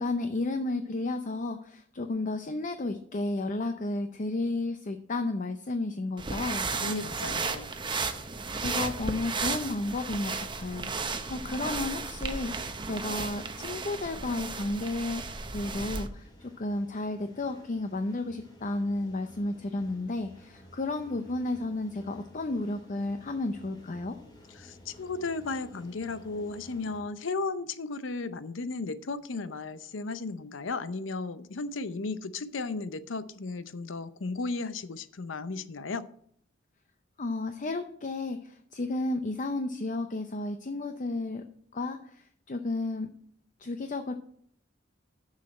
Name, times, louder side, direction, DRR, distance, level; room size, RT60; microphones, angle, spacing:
voice 1, 0.0-6.7 8.6-15.2 15.5-24.2 37.2-41.4 41.7-43.1 43.6-44.2, left 2 dB, 45° left, 7 dB, 0.6 m, -32 dB
sound 1, 6.2-16.1, right 4 dB, 25° right, 0.7 m, -34 dB
voice 2, 6.8-7.7 24.6-36.0, left 3 dB, 90° left, 14 dB, 0.7 m, -35 dB
sound 2, 16.1-27.0, equal, 25° left, 2.5 m, -53 dB
7.2 x 6.5 x 7.6 m, 0.64 s
head